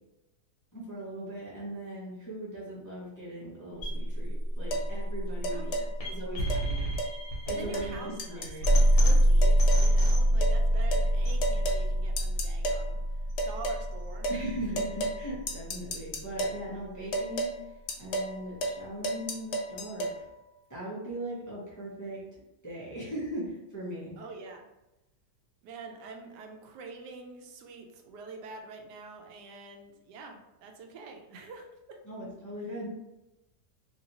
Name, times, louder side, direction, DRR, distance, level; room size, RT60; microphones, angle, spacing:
voice 1, 0.7-5.6 6.1-6.9 7.5-8.8 14.3-20.2 20.7-22.2 22.6-24.1 32.0-32.9, right 1 dB, 20° left, -7 dB, 0.6 m, -39 dB
sound 1, 3.8-15.8, equal, 60° left, 1.3 m, -26 dB
sound 2, 4.7-4.9 5.4-5.9 6.5-6.6 7.0-7.1 7.5-7.9 8.2-8.9 9.4-9.9 10.4-10.6 10.9-11.1 11.4-11.8 12.2-12.8 13.4-13.8 14.2-14.4 14.8-15.2 15.5-16.6 17.1-17.5 17.9-18.3 18.6-18.8 19.0-20.1, right 1 dB, 85° left, 0.6 m, -32 dB
voice 2, 5.5-5.9 6.4-7.0 7.5-14.3 24.2-24.7 25.6-32.3, right 4 dB, 85° right, 3 dB, 1.2 m, -46 dB
3.1 x 2.7 x 2.8 m, 0.98 s
omnidirectional pair, 1.7 m